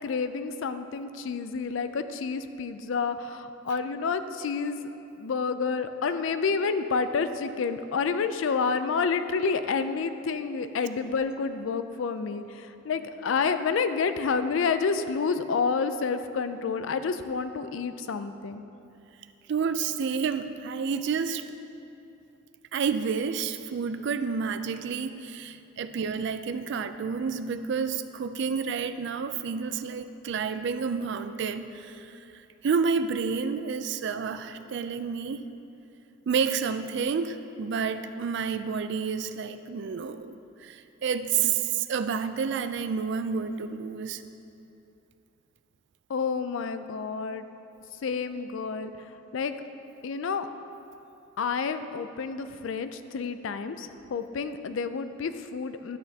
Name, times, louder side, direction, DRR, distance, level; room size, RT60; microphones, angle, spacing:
voice 1, 0.0-4.8 5.2-18.6 46.1-47.4 48.0-49.6 50.0-50.5 51.4-56.0, left 5 dB, 70° left, 10 dB, 0.4 m, -29 dB
voice 2, 19.5-21.4 22.7-32.2 32.6-35.4 36.3-40.3 40.6-44.2, right 6 dB, 60° right, 10 dB, 0.3 m, -29 dB
11.5 x 7.8 x 2.8 m, 2.7 s
head